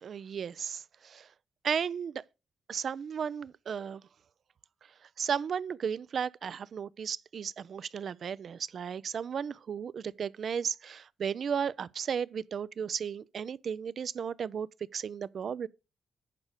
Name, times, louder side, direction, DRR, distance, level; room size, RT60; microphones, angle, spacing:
voice 1, 0.0-1.2 1.6-2.2 2.7-4.0 5.2-14.7 14.9-15.7, right 7 dB, 60° right, 0.4 m, -34 dB
10.5 x 4.8 x 6.3 m
supercardioid pair, 50°, 0 cm